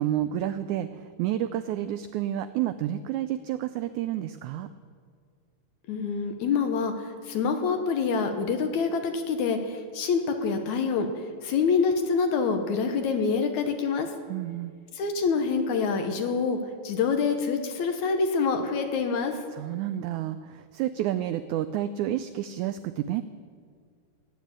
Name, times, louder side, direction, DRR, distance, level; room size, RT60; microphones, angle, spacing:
voice 1, 0.0-4.7 14.3-14.7 19.5-23.2, right 12 dB, 85° right, 12 dB, 1.7 m, -30 dB
voice 2, 5.9-6.9 7.3-11.1 11.4-14.1 14.9-16.6 16.8-19.4, left 5 dB, 70° left, 6 dB, 2.2 m, -26 dB
15.0 x 9.4 x 8.6 m, 2.1 s
omnidirectional pair, 3.9 m